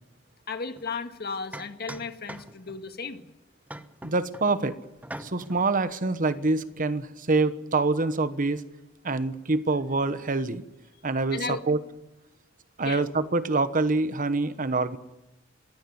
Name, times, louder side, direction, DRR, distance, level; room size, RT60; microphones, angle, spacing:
voice 1, 0.5-3.3 11.3-11.6 12.8-13.0, left 4 dB, 50° left, 7 dB, 1.9 m, -34 dB
sound 1, 0.8-0.9 1.5-2.8 3.7-4.6 5.0-5.6, right 1 dB, 10° right, 1.1 m, -42 dB
voice 2, 4.0-4.8 5.2-8.6 9.0-10.6 11.0-11.8 12.8-15.0, right 3 dB, 45° right, 12 dB, 1.1 m, -26 dB
22.5 x 17.0 x 9.4 m, 0.97 s
head